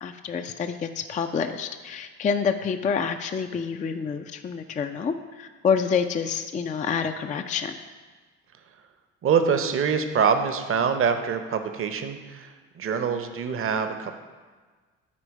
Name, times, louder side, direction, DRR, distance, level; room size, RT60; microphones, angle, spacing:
voice 1, 0.0-7.7, left 6 dB, 20° left, 8 dB, 0.4 m, -27 dB
voice 2, 9.2-14.2, right 6 dB, 30° right, 8 dB, 0.7 m, -25 dB
8.5 x 4.4 x 5.3 m, 1.4 s
figure-of-eight pair, 45°, 41 cm